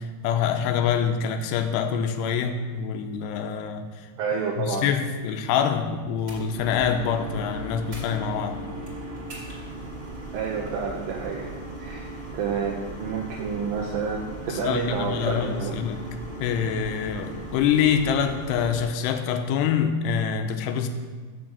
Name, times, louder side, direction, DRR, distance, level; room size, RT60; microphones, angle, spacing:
voice 1, 0.0-4.1 4.6-8.6 14.5-16.0 16.4-20.9, left 7 dB, 85° left, 7 dB, 2.7 m, -25 dB
voice 2, 4.2-4.9 10.3-11.5 11.8-15.7, right 5 dB, 85° right, 0 dB, 2.0 m, -29 dB
sound 1, 6.2-18.9, right 2 dB, 30° right, 1.6 m, -37 dB
6.6 x 6.2 x 6.7 m, 1.4 s
omnidirectional pair, 4.8 m